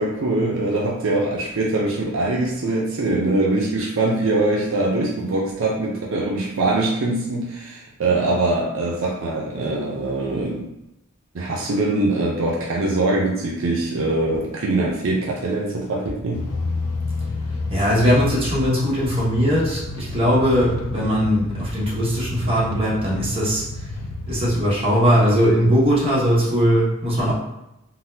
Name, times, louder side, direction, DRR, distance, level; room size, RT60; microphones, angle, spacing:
voice 1, 0.0-10.7 11.3-16.5, right 2 dB, 70° right, -2 dB, 0.5 m, -23 dB
sound 1, 16.3-24.6, left 2 dB, 85° left, 0.4 m, -30 dB
voice 2, 17.7-23.9 24.3-27.3, equal, 25° right, -6 dB, 1.0 m, -19 dB
3.9 x 2.1 x 2.7 m, 0.89 s
head